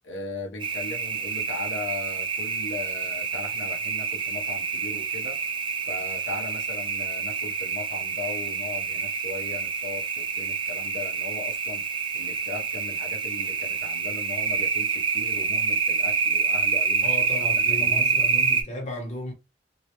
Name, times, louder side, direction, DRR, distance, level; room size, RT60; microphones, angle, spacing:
voice 1, 0.0-5.4 5.9-11.8 12.1-17.1 17.7-18.1, left 3 dB, 80° left, 0.6 m, -38 dB
sound 1, 0.6-18.6, right 5 dB, 25° right, 0.3 m, -27 dB
voice 2, 17.0-19.3, left 1 dB, 40° left, 0.7 m, -34 dB
2.3 x 2.1 x 2.8 m
head